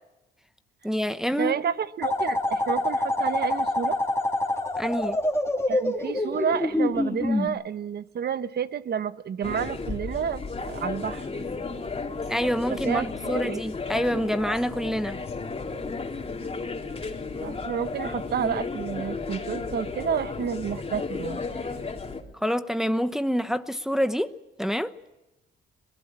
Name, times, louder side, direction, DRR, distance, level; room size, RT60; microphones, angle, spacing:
voice 1, 0.8-1.6 4.8-5.2 12.3-15.2 22.3-24.9, equal, ahead, 1.0 m, -27 dB
voice 2, 1.4-4.0 5.7-11.2 12.8-13.6 17.4-21.6, right 8 dB, 55° right, 1.2 m, -30 dB
sound 1, 2.0-7.5, left 1 dB, 15° left, 3.0 m, -26 dB
sound 2, 9.4-22.2, left 4 dB, 30° left, 3.1 m, -33 dB
23.5 x 19.0 x 7.4 m
cardioid pair, 90°, 20 cm